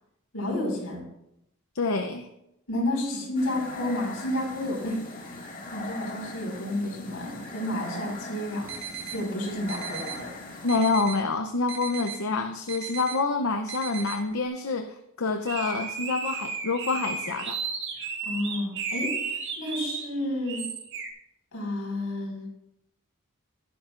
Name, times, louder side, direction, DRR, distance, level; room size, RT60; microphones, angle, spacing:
voice 1, 0.3-1.0 2.7-5.0 5.3-5.4 5.7-8.7 9.1-10.3 18.2-19.1 19.6-20.6 21.5-22.5, left 1 dB, 90° left, -1 dB, 5.2 m, -30 dB
voice 2, 1.7-2.3 10.6-17.6, left 3 dB, 70° left, 6 dB, 0.7 m, -27 dB
sound 1, 3.3-10.7, left 2 dB, 40° left, 2.1 m, -40 dB
sound 2, 8.7-9.2 9.7-10.2 10.7-11.2 11.7-12.2 12.7-13.2 13.7-14.2, right 9 dB, 80° right, 3.2 m, -36 dB
sound 3, 15.5-20.0 20.5-21.1, right 5 dB, 55° right, 1.9 m, -33 dB
15.0 x 11.5 x 2.5 m, 0.82 s
head